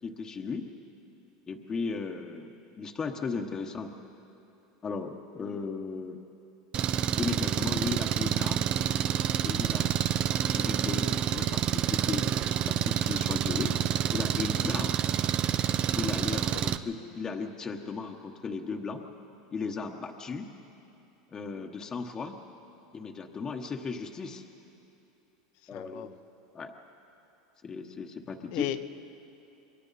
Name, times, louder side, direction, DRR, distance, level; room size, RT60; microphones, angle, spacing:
voice 1, 0.0-0.7 1.5-3.9 4.8-6.2 7.2-8.7 9.4-9.9 10.4-12.3 12.6-13.8 14.1-15.0 16.0-19.0 19.5-20.5 21.3-22.4 22.9-24.4 25.7-26.1 26.5-26.7 27.6-28.7, left 4 dB, 25° left, 2 dB, 1.1 m, -36 dB
Engine, 6.7-16.8, right 9 dB, 40° right, 0.6 m, -28 dB
voice 2, 16.3-16.6 25.7-26.1 28.5-28.8, left 13 dB, 60° left, 10 dB, 0.9 m, -36 dB
27.5 x 22.5 x 4.2 m, 2.8 s
supercardioid pair, 115°, 3 cm